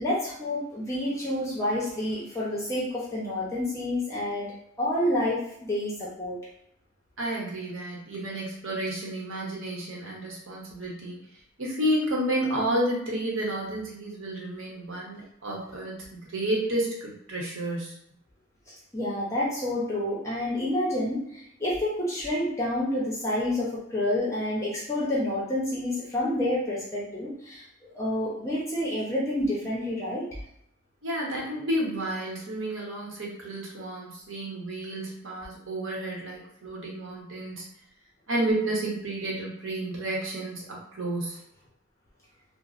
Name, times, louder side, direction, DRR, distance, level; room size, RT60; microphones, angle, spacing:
voice 1, 0.0-4.5 4.8-5.4 5.7-6.4 18.7-27.6 27.9-30.3, left 1 dB, 15° left, -6 dB, 0.7 m, -28 dB
voice 2, 7.2-11.2 11.6-17.9 31.0-37.6 38.3-41.4, right 1 dB, 85° right, -3 dB, 0.9 m, -31 dB
2.9 x 2.1 x 2.5 m, 0.73 s
head